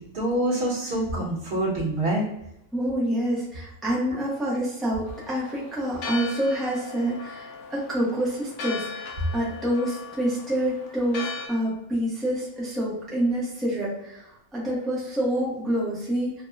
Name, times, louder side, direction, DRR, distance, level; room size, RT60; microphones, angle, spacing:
voice 1, 0.1-2.2, right 1 dB, 55° right, -6 dB, 1.4 m, -25 dB
voice 2, 2.7-16.4, right 1 dB, ahead, -6 dB, 0.6 m, -27 dB
Church bell, 5.1-11.5, left 4 dB, 85° left, 1.0 m, -38 dB
3.5 x 2.2 x 2.4 m, 0.83 s
omnidirectional pair, 1.4 m